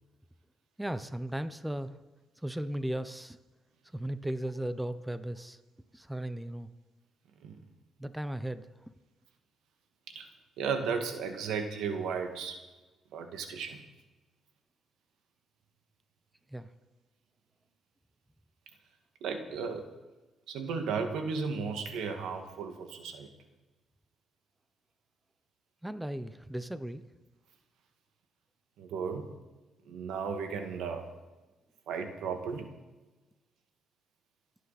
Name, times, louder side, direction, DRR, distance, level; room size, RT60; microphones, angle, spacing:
voice 1, 0.8-1.9 2.4-3.4 3.9-5.6 5.9-6.7 8.0-8.7 16.5-16.7 25.8-27.0, right 1 dB, 5° right, 11 dB, 0.8 m, -36 dB
voice 2, 10.6-12.6 13.1-13.8 19.2-19.9 20.5-23.3 28.8-29.3 29.9-31.1 31.9-32.7, right 5 dB, 85° right, 5 dB, 1.9 m, -34 dB
28.0 x 9.5 x 4.3 m, 1.2 s
cardioid pair, 90°, 0 cm